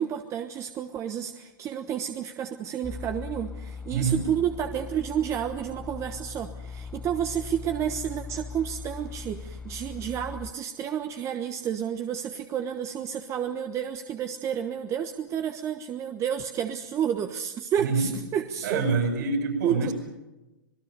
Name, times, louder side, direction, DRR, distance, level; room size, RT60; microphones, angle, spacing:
voice 1, 0.0-18.8 19.6-19.9, right 9 dB, 25° right, 7 dB, 1.2 m, -30 dB
sound 1, 2.8-10.5, left 5 dB, 5° left, 0.9 m, -40 dB
voice 2, 3.9-4.2 17.8-18.1 18.6-19.9, right 4 dB, 60° right, 4 dB, 7.6 m, -26 dB
26.5 x 20.0 x 6.9 m, 1.1 s
hypercardioid pair, 115°, 11 cm